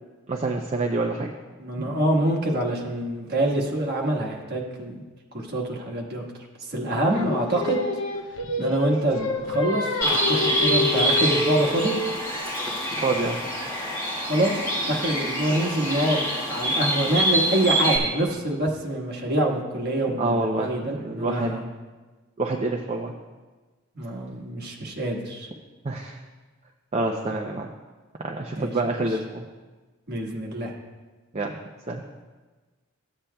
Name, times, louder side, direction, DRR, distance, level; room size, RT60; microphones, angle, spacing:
voice 1, 0.3-1.3 1.8-1.9 6.9-7.1 8.6-8.7 13.0-13.4 20.2-21.5 22.4-23.1 25.8-26.2 26.9-27.7 28.2-29.5 31.3-31.5 31.9-32.0, right 2 dB, 30° right, 0 dB, 0.4 m, -27 dB
voice 2, 1.6-5.0 5.3-6.2 6.7-7.8 8.6-12.0 14.2-21.6 23.9-25.5 28.6-28.7 30.1-30.7, right 1 dB, 50° right, -2 dB, 1.4 m, -26 dB
Singing, 7.1-12.3, left 2 dB, 65° left, 0.8 m, -28 dB
Bird, 10.0-18.0, right 1 dB, 15° left, 1.8 m, -25 dB
14.0 x 8.6 x 2.2 m, 1.3 s
head